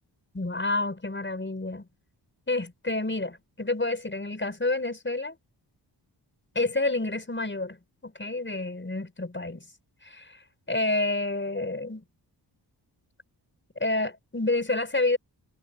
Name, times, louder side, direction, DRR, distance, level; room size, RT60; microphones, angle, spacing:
voice 1, 0.3-1.9 2.5-5.4 6.6-7.8 8.0-9.7 10.0-10.4 10.7-12.0 13.8-15.2, left 2 dB, 25° left, 5.7 m, -29 dB
cardioid pair, 80°, 43 cm